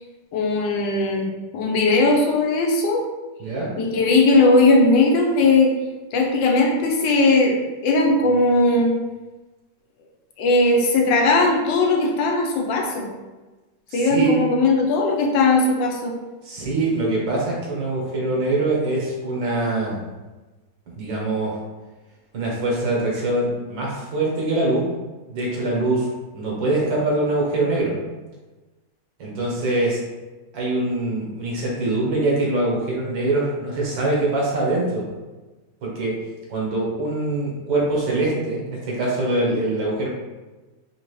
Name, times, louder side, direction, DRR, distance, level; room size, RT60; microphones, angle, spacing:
voice 1, 0.3-1.3 1.5-3.0 3.8-5.7 6.1-7.6 7.8-8.9 10.4-13.1 13.9-16.1, left 2 dB, 85° left, 1 dB, 1.4 m, -18 dB
voice 2, 3.4-3.7 13.9-14.3 16.4-20.0 20.9-21.6 22.3-24.9 25.3-26.1 26.3-28.0 29.2-30.0 30.5-35.1 35.8-36.2 36.5-40.1, right 2 dB, 85° right, -4 dB, 1.8 m, -23 dB
5.0 x 2.6 x 3.1 m, 1.2 s
omnidirectional pair, 1.9 m